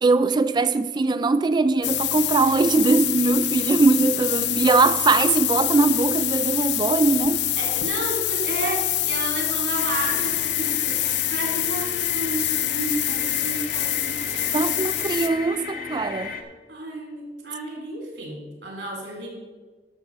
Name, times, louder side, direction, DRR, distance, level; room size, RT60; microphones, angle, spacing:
voice 1, 0.0-7.5 14.5-16.3, right 3 dB, 25° right, 0.3 m, -21 dB
sound 1, 1.8-15.3, left 14 dB, 75° left, 0.6 m, -26 dB
voice 2, 7.6-11.0 11.3-15.2 16.7-19.3, right 1 dB, 75° right, 3.7 m, -32 dB
sound 2, 9.8-16.4, left 4 dB, 55° left, 1.1 m, -36 dB
11.5 x 6.9 x 5.4 m
head